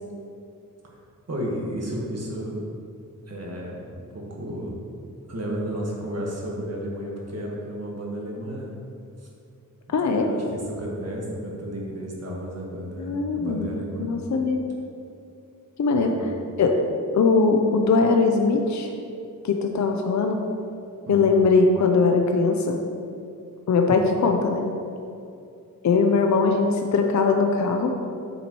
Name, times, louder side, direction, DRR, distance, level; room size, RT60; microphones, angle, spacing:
voice 1, 1.3-2.6 3.3-4.7 5.3-8.7 9.9-14.1 15.9-16.2 21.0-21.2, equal, 45° right, -3 dB, 1.5 m, -33 dB
voice 2, 9.9-10.3 13.0-13.7 14.0-14.6 15.8-16.1 16.6-16.8 17.1-18.9 19.4-20.4 21.1-22.8 23.7-24.7 25.8-27.9, left 4 dB, 55° left, 3 dB, 0.6 m, -20 dB
9.2 x 7.2 x 3.0 m, 2.5 s
wide cardioid pair, 140°, 35 cm